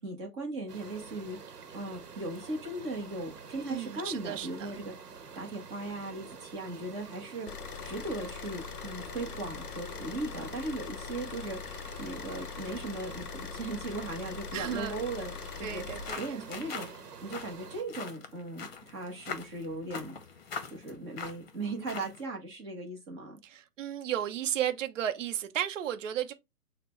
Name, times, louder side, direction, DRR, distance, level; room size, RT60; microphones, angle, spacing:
voice 1, 0.0-4.9 5.3-11.6 12.0-15.8 16.2-20.1 20.7-23.4, right 2 dB, 20° right, 0.9 m, -38 dB
sound 1, 0.7-17.8, right 5 dB, 85° right, 0.9 m, -47 dB
voice 2, 3.7-4.7 14.5-15.0 15.6-16.5 23.4-26.3, right 11 dB, 55° right, 0.7 m, -34 dB
Car / Idling, 7.5-16.1, left 8 dB, 75° left, 0.6 m, -42 dB
sound 2, 15.8-22.3, left 6 dB, 40° left, 0.8 m, -43 dB
6.5 x 2.2 x 3.0 m
hypercardioid pair, 150°, 46 cm